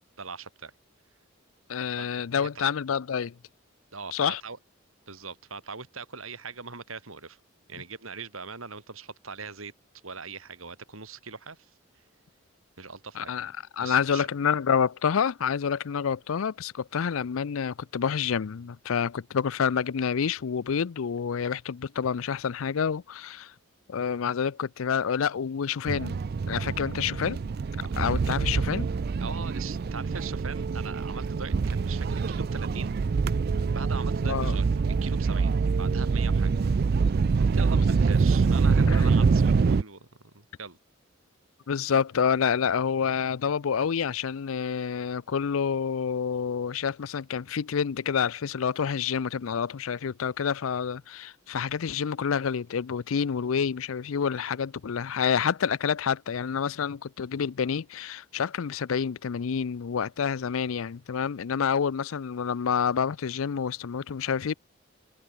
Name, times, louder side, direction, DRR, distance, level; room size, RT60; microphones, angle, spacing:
voice 1, 0.2-0.7 2.0-2.1 2.6-2.7 3.9-4.6 5.1-7.4 7.7-9.7 10.0-11.7 12.8-13.3 13.8-14.3 27.8-28.0 29.2-33.0 33.7-34.6 35.0-36.5 37.4-40.8, right 5 dB, 90° right, 4.0 m, -41 dB
voice 2, 1.7-3.4 4.1-4.4 13.2-23.5 23.9-26.2 26.5-27.4 28.0-28.9 34.3-34.6 38.9-39.1 41.7-64.5, left 7 dB, 85° left, 0.5 m, -28 dB
sound 1, 25.9-39.8, right 4 dB, 50° right, 0.4 m, -25 dB
head